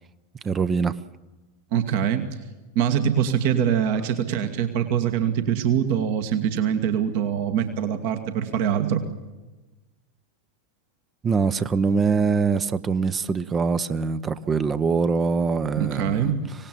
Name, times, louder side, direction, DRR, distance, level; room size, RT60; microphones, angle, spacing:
voice 1, 0.4-1.0 11.2-16.3, right 5 dB, 20° right, 14 dB, 0.8 m, -23 dB
voice 2, 1.7-2.3 2.7-9.0 15.8-16.4, right 9 dB, 50° right, 7 dB, 1.7 m, -23 dB
25.5 x 18.5 x 7.5 m, 1.2 s
figure-of-eight pair, 90°, 0 cm